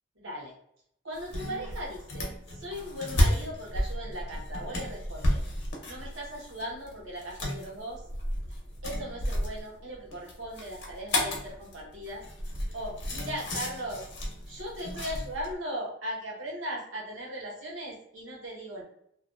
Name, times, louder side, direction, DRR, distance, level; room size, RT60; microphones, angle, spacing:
voice 1, 0.2-0.5 1.0-5.4 5.9-8.0 8.8-12.3 12.7-14.0 14.5-18.8, equal, 85° right, -3 dB, 0.9 m, -38 dB
sound 1, 1.1-15.5, left 1 dB, 60° left, 0.6 m, -33 dB
2.5 x 2.2 x 2.4 m, 0.73 s
head